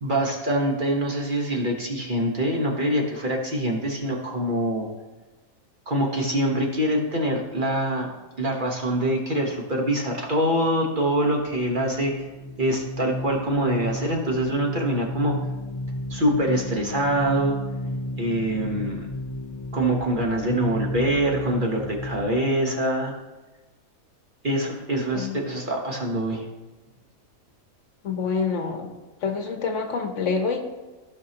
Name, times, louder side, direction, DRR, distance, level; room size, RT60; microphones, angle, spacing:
voice 1, 0.0-4.9 5.9-8.1 8.4-12.3 12.6-15.3 16.1-17.6 18.2-19.1 19.7-23.2 24.4-26.4, right 1 dB, 40° right, 0 dB, 1.2 m, -24 dB
sound 1, 11.3-22.3, left 1 dB, 20° left, 0.8 m, -33 dB
voice 2, 28.0-28.9 29.2-30.6, left 5 dB, 60° left, 5 dB, 1.1 m, -26 dB
15.5 x 5.4 x 2.9 m, 1.2 s
omnidirectional pair, 1.5 m